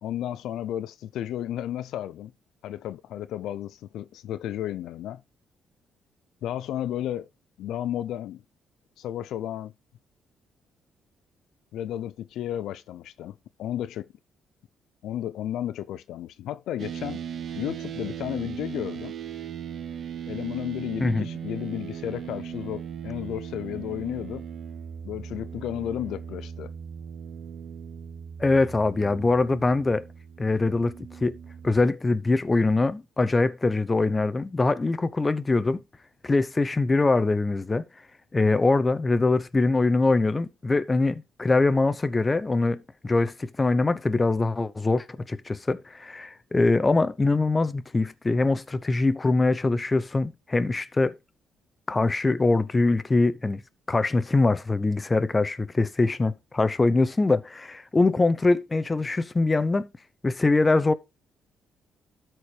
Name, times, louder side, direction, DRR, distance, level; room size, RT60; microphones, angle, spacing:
voice 1, 0.0-2.3 2.6-5.2 6.4-7.3 7.6-8.4 9.0-9.7 11.7-14.1 15.0-17.2 17.6-19.1 20.3-24.5 25.0-26.7, left 11 dB, 85° left, 0.4 m, -33 dB
sound 1, 16.8-31.8, right 8 dB, 55° right, 0.6 m, -38 dB
voice 2, 28.4-30.0 30.4-30.9 31.2-31.4 31.6-35.8 36.2-37.8 38.3-51.2 51.9-53.6 53.9-59.9 60.2-60.9, left 3 dB, 25° left, 0.7 m, -23 dB
13.0 x 4.6 x 3.2 m
cardioid pair, 90°, 0 cm